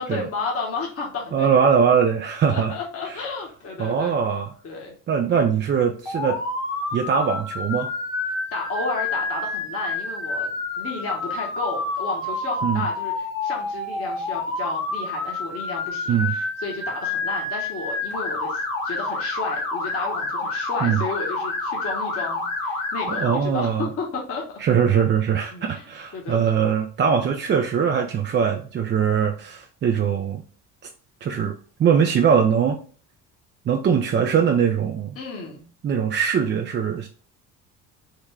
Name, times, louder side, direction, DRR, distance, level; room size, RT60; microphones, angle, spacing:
voice 1, 0.0-1.5 2.5-4.2 4.6-4.9 8.5-10.5 10.8-24.6 25.5-25.8 26.1-26.4 35.2-35.6, left 3 dB, 40° left, 0 dB, 1.0 m, -32 dB
voice 2, 1.3-2.7 3.1-3.2 3.8-4.5 5.1-6.4 6.9-7.9 12.6-12.9 16.1-16.4 20.8-21.0 23.1-23.9 24.6-30.4 31.2-32.8 33.7-35.2 35.8-37.1, right 7 dB, 30° right, 3 dB, 0.4 m, -21 dB
Motor vehicle (road) / Siren, 6.1-23.4, left 3 dB, 65° left, 1.3 m, -28 dB
3.7 x 2.1 x 3.2 m, 0.41 s
supercardioid pair, 75°, 37 cm